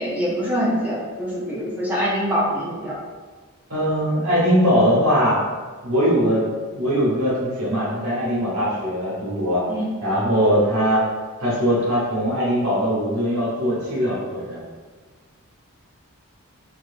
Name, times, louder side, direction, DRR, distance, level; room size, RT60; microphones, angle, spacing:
voice 1, 0.0-2.9 9.7-9.9, equal, 5° right, -6 dB, 0.6 m, -24 dB
voice 2, 3.7-5.4 5.8-6.4 6.7-9.6 10.0-11.0 11.4-14.6, equal, 75° right, -6 dB, 1.3 m, -21 dB
4.3 x 2.5 x 2.5 m, 1.4 s
head